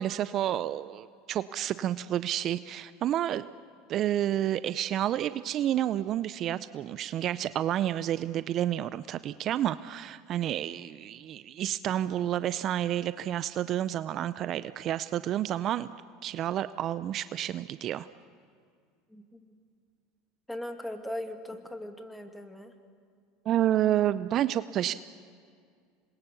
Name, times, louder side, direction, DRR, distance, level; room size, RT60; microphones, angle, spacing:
voice 1, 0.0-3.5 3.9-15.9 16.2-18.1 23.5-24.9, right 11 dB, 45° right, 15 dB, 0.5 m, -30 dB
voice 2, 19.1-19.6 20.5-22.7, left 1 dB, 5° left, 5 dB, 2.3 m, -39 dB
27.0 x 21.5 x 7.0 m, 2.2 s
hypercardioid pair, 95°, 0 cm